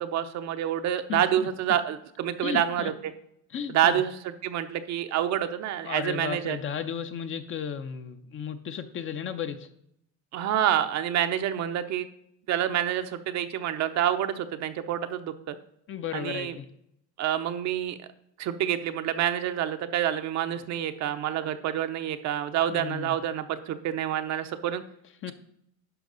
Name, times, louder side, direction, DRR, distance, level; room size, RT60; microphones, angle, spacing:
voice 1, 0.0-3.1 3.7-6.6 10.3-12.1 12.5-15.6 16.1-16.5 17.2-18.0 18.4-24.8, right 10 dB, 50° right, 9 dB, 0.8 m, -28 dB
voice 2, 1.1-1.5 2.4-2.9 3.5-4.0 5.8-9.7 15.9-16.7 22.7-23.2 25.2-25.3, left 7 dB, 35° left, 9 dB, 0.7 m, -34 dB
10.5 x 5.9 x 3.9 m, 0.75 s
cardioid pair, 120°, 35 cm